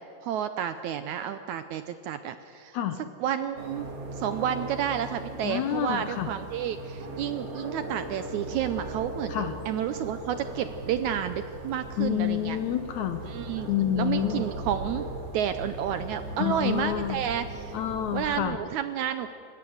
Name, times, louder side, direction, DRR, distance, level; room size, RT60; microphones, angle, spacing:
voice 1, 0.2-2.8 3.2-3.9 4.1-9.3 9.7-12.6 13.3-13.7 14.0-15.1 15.3-17.8 18.1-19.3, right 10 dB, 75° right, 10 dB, 1.8 m, -30 dB
sound 1, 3.6-18.4, right 1 dB, 50° right, 2.9 m, -38 dB
voice 2, 5.4-6.3 9.3-9.5 12.0-13.2 13.7-14.4 16.4-17.2 17.7-18.6, left 11 dB, 70° left, 9 dB, 2.0 m, -28 dB
28.5 x 15.5 x 7.9 m, 2.6 s
omnidirectional pair, 3.9 m